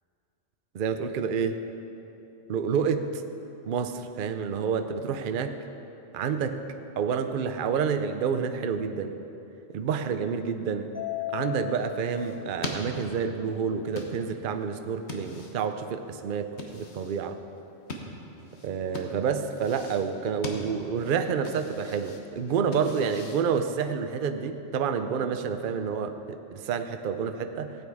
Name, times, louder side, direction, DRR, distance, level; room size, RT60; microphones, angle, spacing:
voice 1, 0.7-1.6 2.5-3.1 3.6-5.6 6.1-6.6 7.0-9.1 9.7-10.9 11.3-17.3 18.6-26.2 26.5-27.8, right 6 dB, 55° right, 8 dB, 0.7 m, -29 dB
Mallet percussion, 10.9-13.4, left 13 dB, 20° left, 1.0 m, -37 dB
sound 1, 11.7-24.1, left 2 dB, 60° left, 1.4 m, -42 dB
16.5 x 8.4 x 4.8 m, 3.0 s
omnidirectional pair, 1.3 m